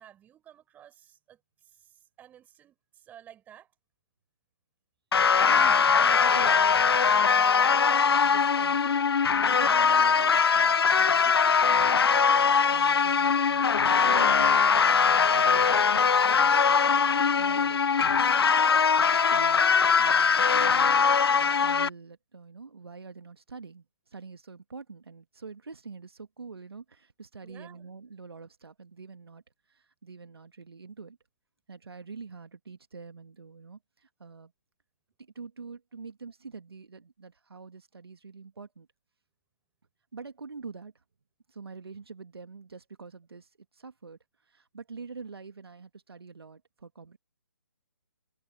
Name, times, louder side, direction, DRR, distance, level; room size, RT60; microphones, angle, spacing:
voice 1, 0.0-3.7 17.4-17.8 27.4-27.9, right 10 dB, 15° right, 4.5 m, -53 dB
sound 1, 5.1-21.9, left 6 dB, 75° left, 0.5 m, -22 dB
voice 2, 5.5-6.8 7.0-7.6 8.2-8.8 9.5-16.8 17.2-18.2 19.1-29.4 29.7-31.2 31.7-34.5 35.2-38.9 40.1-40.9 41.5-47.2, right 4 dB, 75° right, 2.1 m, -46 dB
figure-of-eight pair, 145°, 13 cm